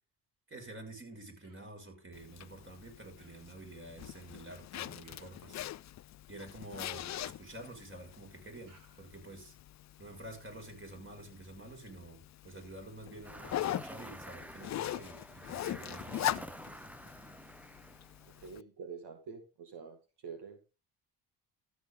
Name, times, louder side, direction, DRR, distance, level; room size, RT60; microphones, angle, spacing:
voice 1, 0.5-5.6 6.3-9.5 10.0-16.5, right 2 dB, 30° right, 5.9 m, -49 dB
Human voice, 1.4-1.8 3.2-3.6 5.0-5.6 7.0-7.9 8.7-9.2, right 3 dB, 50° right, 3.6 m, -64 dB
Zipper (clothing), 2.1-18.6, left 13 dB, 45° left, 0.4 m, -42 dB
sound 1, 13.2-18.5, right 1 dB, 5° right, 0.7 m, -48 dB
voice 2, 18.4-20.0 20.2-20.6, right 5 dB, 70° right, 2.3 m, -46 dB
13.0 x 8.2 x 3.8 m
supercardioid pair, 70°, 42 cm